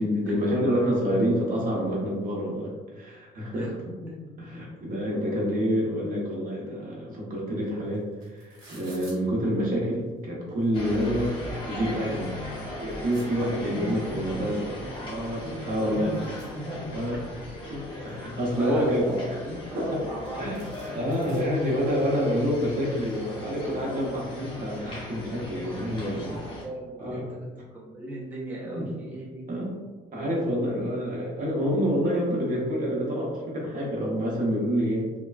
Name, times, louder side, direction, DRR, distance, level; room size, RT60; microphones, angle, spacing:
voice 1, 0.0-3.7 4.4-11.4 11.7-12.3 12.8-14.7 15.1-16.2 16.9-17.2 17.6-19.2 19.7-20.0 20.4-20.6 20.9-26.4 27.0-27.3 28.6-28.9 29.5-29.7 30.1-35.1, equal, 55° right, -3 dB, 0.9 m, -27 dB
voice 2, 3.5-4.6 13.6-14.9 15.1-16.8 17.1-17.2 18.2-20.5 20.9-21.0 25.7-27.4 27.7-29.6, right 1 dB, 10° right, -5 dB, 0.5 m, -38 dB
sound 1, 7.7-7.8 7.9-9.2 10.0-10.1 10.5-11.3 11.7-11.8 12.2-13.3 14.5-14.6 14.9-15.0 15.2-17.2 17.6-18.3 18.8-20.0 20.2-20.3 20.5-21.4, right 2 dB, 85° right, 1.1 m, -52 dB
sound 2, 10.7-26.6, left 1 dB, 30° left, 0.9 m, -38 dB
3.0 x 2.2 x 2.3 m, 1.4 s
cardioid pair, 110°, 17 cm